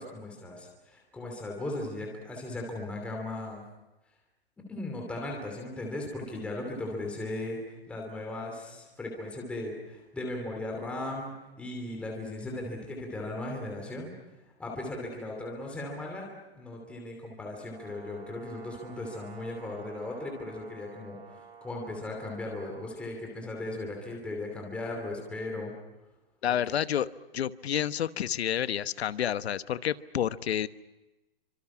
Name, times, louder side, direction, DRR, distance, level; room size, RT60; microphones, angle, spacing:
voice 1, 0.0-3.6 4.7-14.1 14.6-16.3 16.6-21.2 21.6-25.7 26.5-26.8, left 2 dB, 5° left, 0 dB, 2.8 m, -37 dB
Brass instrument, 17.7-22.9, right 6 dB, 30° right, 5.8 m, -50 dB
voice 2, 26.4-27.1 27.3-30.7, left 10 dB, 85° left, 13 dB, 1.1 m, -29 dB
29.5 x 25.5 x 6.1 m, 1.1 s
hypercardioid pair, 180°, 31 cm